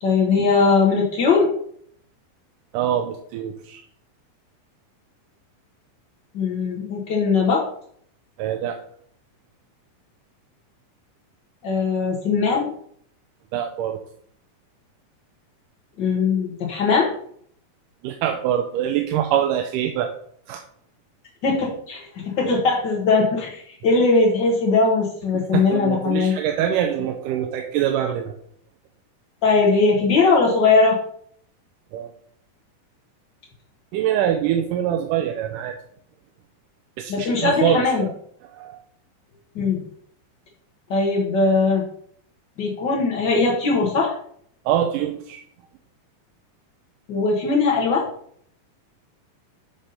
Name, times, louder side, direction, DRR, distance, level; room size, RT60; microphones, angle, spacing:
voice 1, 0.0-1.5 6.3-7.7 11.6-12.7 16.0-17.1 21.4-26.4 29.4-31.0 37.1-38.0 39.5-39.8 40.9-41.8 42.6-44.2 47.1-48.0, left 4 dB, 75° left, -2 dB, 1.0 m, -20 dB
voice 2, 2.7-3.8 8.4-8.8 13.5-14.0 18.0-20.1 20.5-20.6 25.5-28.3 31.9-32.1 33.9-35.8 37.0-38.1 38.5-38.8 44.7-45.4, right 10 dB, 75° right, 5 dB, 2.1 m, -24 dB
7.2 x 5.3 x 5.5 m, 0.63 s
omnidirectional pair, 4.1 m